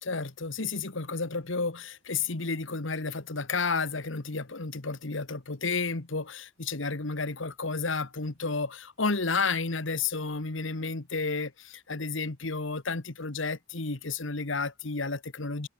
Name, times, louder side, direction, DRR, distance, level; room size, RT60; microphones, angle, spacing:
voice 1, 0.0-15.7, left 4 dB, 75° left, 1.6 m, -31 dB
head